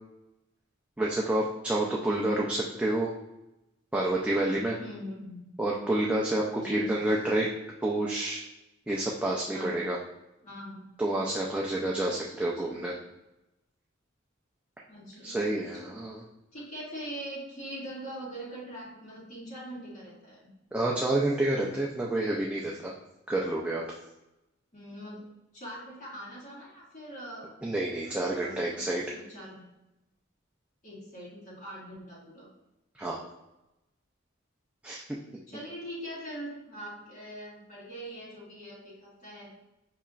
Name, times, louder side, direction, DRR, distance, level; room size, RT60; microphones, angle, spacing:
voice 1, 1.0-3.1 3.9-4.8 5.6-7.5 7.8-8.4 8.9-10.0 11.0-12.9 15.2-16.2 20.7-22.9 23.3-23.8 27.6-29.0 33.0-33.3 34.8-35.0, right 1 dB, 5° right, -4 dB, 0.4 m, -29 dB
voice 2, 4.8-5.5 6.6-7.4 9.5-9.9 10.4-10.9 11.8-12.8 14.9-16.0 16.5-20.5 24.7-25.3 25.5-27.5 28.0-28.8 29.1-29.7 30.8-32.5 35.5-39.5, equal, 40° left, -6 dB, 1.5 m, -43 dB
5.4 x 2.9 x 2.4 m, 0.94 s
head